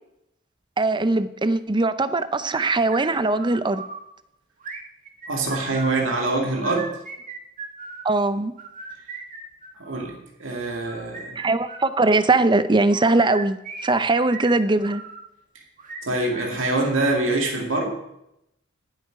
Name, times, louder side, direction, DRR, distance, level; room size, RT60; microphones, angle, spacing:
voice 1, 0.8-3.9 8.0-8.5 11.4-15.0, right 2 dB, 25° right, 0.6 m, -21 dB
sound 1, 2.5-4.0 4.6-6.0 6.5-8.1 8.6-10.2 10.7-12.2 12.9-15.2 15.8-17.3, right 4 dB, 40° right, 1.7 m, -38 dB
voice 2, 5.3-6.9 9.8-11.4 15.5-15.6 16.0-17.9, right 2 dB, 75° right, 2.4 m, -24 dB
19.5 x 8.1 x 4.7 m
head